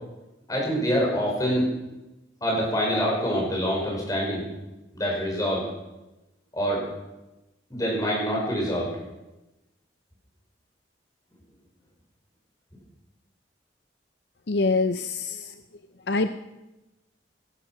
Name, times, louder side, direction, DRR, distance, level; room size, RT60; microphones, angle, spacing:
voice 1, 0.5-1.6 2.4-4.4 4.9-5.6 6.5-6.8 7.7-8.9, equal, 20° left, -3 dB, 5.6 m, -25 dB
voice 2, 14.5-15.5 16.1-16.3, left 3 dB, 60° left, 10 dB, 0.6 m, -25 dB
17.5 x 11.0 x 6.0 m, 1.0 s
head